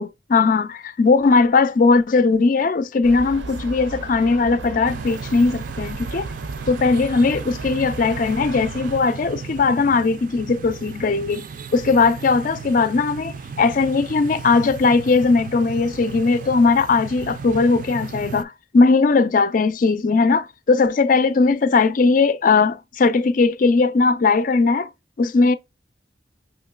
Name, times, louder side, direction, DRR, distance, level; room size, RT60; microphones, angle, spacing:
voice 1, 0.0-6.3 6.7-11.4 11.7-24.9 25.2-25.6, left 4 dB, 45° left, 0.4 m, -18 dB
sound 1, 3.0-9.0, right 3 dB, 85° right, 0.6 m, -35 dB
sound 2, 4.8-18.4, right 5 dB, 45° right, 0.3 m, -35 dB
5.7 x 2.9 x 2.3 m
head